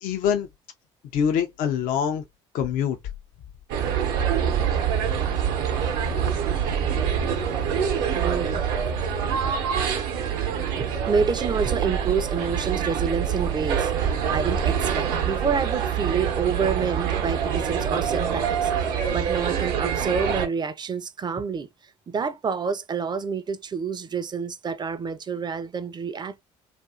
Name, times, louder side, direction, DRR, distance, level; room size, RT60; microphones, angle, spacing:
voice 1, 0.0-0.5 1.1-2.2 2.5-3.0, left 8 dB, 65° left, 0.5 m, -24 dB
sound 1, 3.7-20.5, right 8 dB, 75° right, 0.7 m, -25 dB
voice 2, 8.1-8.7 10.8-21.7 22.1-26.4, right 6 dB, 30° right, 0.5 m, -28 dB
2.6 x 2.5 x 2.3 m
hypercardioid pair, 60°, 15 cm